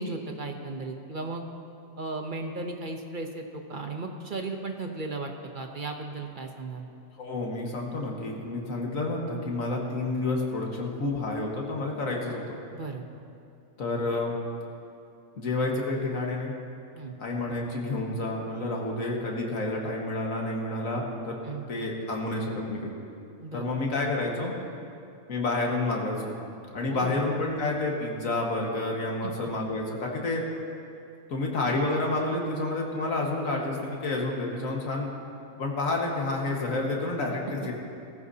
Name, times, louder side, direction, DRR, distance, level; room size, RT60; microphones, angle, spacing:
voice 1, 0.0-1.4 2.0-6.9 12.7-13.1 16.9-17.2 21.4-21.6 23.4-23.7 26.9-27.2 29.2-29.3, right 3 dB, 45° right, 3 dB, 0.9 m, -35 dB
voice 2, 7.2-12.6 13.8-14.3 15.3-16.5 17.2-21.4 21.7-22.9 23.5-24.5 25.3-26.4 26.7-30.5 31.3-35.1 35.5-37.7, left 2 dB, 75° left, -1 dB, 2.0 m, -29 dB
18.0 x 14.5 x 2.8 m, 2.6 s
omnidirectional pair, 1.4 m